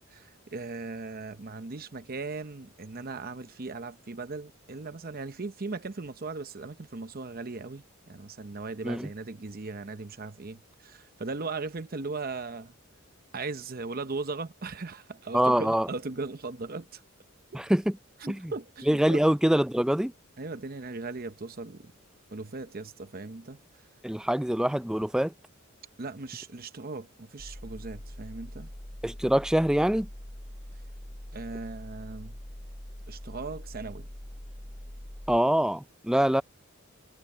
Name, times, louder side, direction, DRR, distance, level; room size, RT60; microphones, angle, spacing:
voice 1, 0.1-12.7 13.3-17.0 17.5-17.6 18.2-19.2 20.4-21.9 22.3-23.6 26.0-28.7 31.3-32.4 33.1-34.1, right 3 dB, 45° right, 0.8 m, -38 dB
voice 2, 15.3-15.9 17.5-18.0 18.3-18.5 18.9-20.1 24.0-25.3 29.0-30.1 35.3-36.4, right 1 dB, 5° right, 0.3 m, -24 dB
sound 1, 27.4-35.4, equal, 25° left, 1.7 m, -43 dB
head